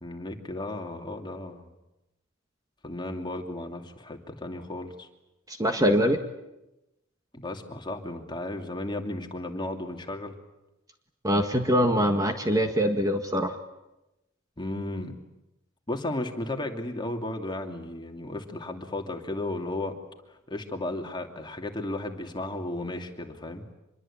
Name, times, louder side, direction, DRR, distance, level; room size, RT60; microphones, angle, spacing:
voice 1, 0.0-1.7 2.8-5.1 7.3-10.3 14.6-15.2 15.9-20.0 20.3-23.6, left 1 dB, 20° left, 3 dB, 2.7 m, -34 dB
voice 2, 5.5-6.2 11.2-13.6, equal, 15° right, 5 dB, 1.6 m, -23 dB
26.0 x 22.0 x 8.8 m, 0.95 s
head